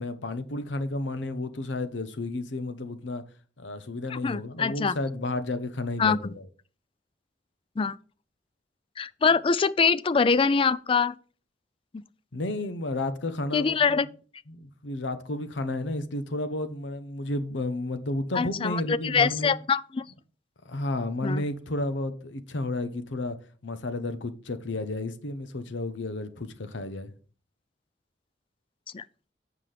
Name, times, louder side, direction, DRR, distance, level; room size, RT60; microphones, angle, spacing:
voice 1, 0.0-3.2 3.6-6.5 12.3-14.0 14.5-19.5 20.6-23.4 23.6-27.1, left 2 dB, 85° left, 0.9 m, -32 dB
voice 2, 4.1-5.0 6.0-6.3 7.8-8.0 9.0-11.1 13.5-14.1 18.3-20.1 21.2-21.4 28.9-29.0, left 5 dB, 30° left, 0.3 m, -24 dB
7.6 x 6.0 x 4.9 m
head